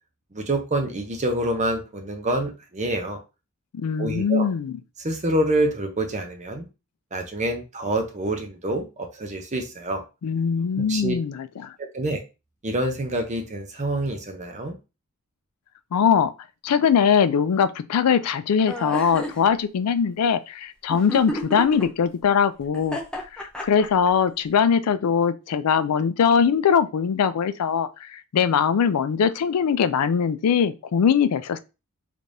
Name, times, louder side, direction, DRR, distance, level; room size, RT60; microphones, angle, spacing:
voice 1, 0.3-3.2 4.0-4.5 5.0-6.7 7.1-10.0 10.9-11.1 11.9-12.2 12.6-14.8, right 1 dB, 30° right, 0.7 m, -26 dB
voice 2, 3.7-4.8 10.2-11.7 15.9-16.3 16.6-23.0 23.3-31.6, left 7 dB, 85° left, 0.4 m, -21 dB
sound 1, 18.7-19.4 20.9-21.8 22.7-24.1, equal, 5° left, 0.6 m, -30 dB
3.4 x 3.3 x 2.6 m
head